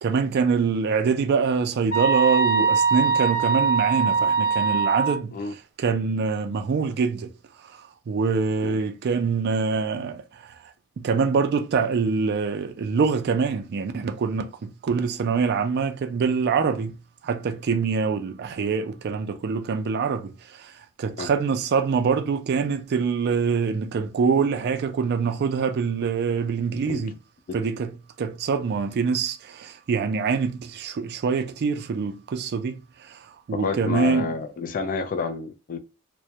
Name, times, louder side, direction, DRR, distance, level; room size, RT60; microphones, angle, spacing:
voice 1, 0.0-5.4 5.8-7.3 7.7-10.5 11.0-17.0 17.2-20.7 21.0-27.2 27.5-27.9 28.2-33.2 33.5-34.3, right 5 dB, 50° right, 0.3 m, -25 dB
sound 1, 1.9-5.2, right 5 dB, 65° left, 0.9 m, -22 dB
voice 2, 33.5-35.8, left 4 dB, 40° left, 0.4 m, -29 dB
2.2 x 2.0 x 2.7 m
head